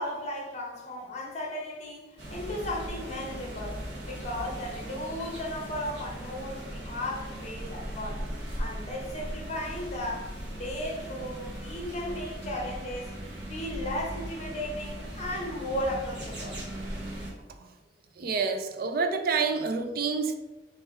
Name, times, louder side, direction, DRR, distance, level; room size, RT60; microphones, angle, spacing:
voice 1, 0.0-3.8 4.1-8.2 8.6-13.1 13.5-16.6, left 1 dB, 40° left, 1.0 m, -35 dB
sound 1, 2.2-17.3, right 1 dB, 75° right, 1.3 m, -38 dB
voice 2, 18.2-20.3, right 5 dB, 55° right, 0.4 m, -28 dB
3.5 x 3.2 x 4.3 m
head